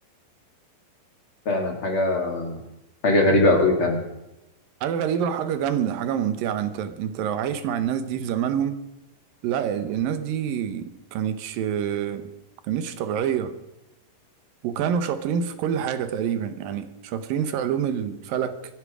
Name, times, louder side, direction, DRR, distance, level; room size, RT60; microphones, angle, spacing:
voice 1, 1.5-2.6 3.0-4.0, left 2 dB, 40° left, 2.7 m, -21 dB
voice 2, 4.8-8.8 9.4-12.3 12.7-13.5 14.6-18.6, right 8 dB, 80° right, 2.7 m, -26 dB
26.0 x 10.5 x 4.9 m
omnidirectional pair, 4.0 m